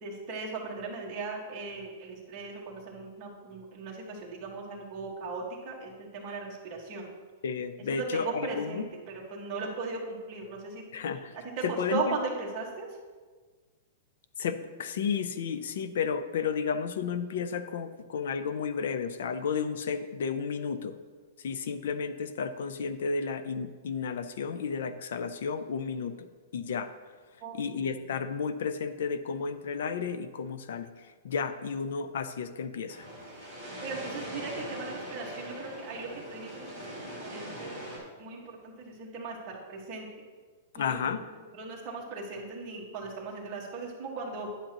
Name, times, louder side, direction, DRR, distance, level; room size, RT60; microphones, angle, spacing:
voice 1, 0.0-7.1 7.9-10.8 11.4-12.9 27.4-28.0 33.8-36.8 37.0-37.8 38.2-40.1 40.7-41.2 41.5-44.5, right 3 dB, 25° right, -3 dB, 1.5 m, -38 dB
voice 2, 7.4-8.8 10.9-11.3 11.6-12.1 14.4-20.9 21.4-26.1 26.5-26.9 27.5-30.9 31.2-33.1 40.7-41.2, left 6 dB, 65° left, 11 dB, 0.5 m, -32 dB
sound 1, 32.9-38.0, equal, 10° left, 2.8 m, -41 dB
10.0 x 7.9 x 2.9 m, 1.4 s
supercardioid pair, 175°, 0 cm